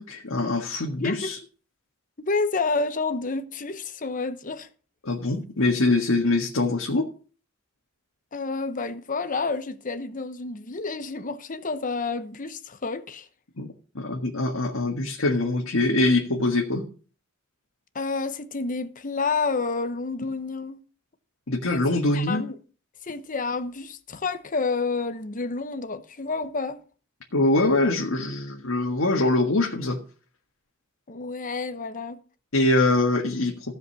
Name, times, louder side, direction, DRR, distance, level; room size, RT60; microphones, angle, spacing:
voice 1, 0.0-1.4 5.0-7.0 13.6-13.7 13.9-16.8 21.5-22.4 27.3-30.0 32.5-33.5, left 2 dB, 80° left, 1.7 m, -23 dB
voice 2, 1.0-1.3 2.2-4.7 8.3-13.3 17.9-20.8 21.7-21.8 22.1-22.6 23.0-26.8 31.1-32.2, left 4 dB, 40° left, 0.9 m, -29 dB
16.0 x 5.3 x 7.0 m
head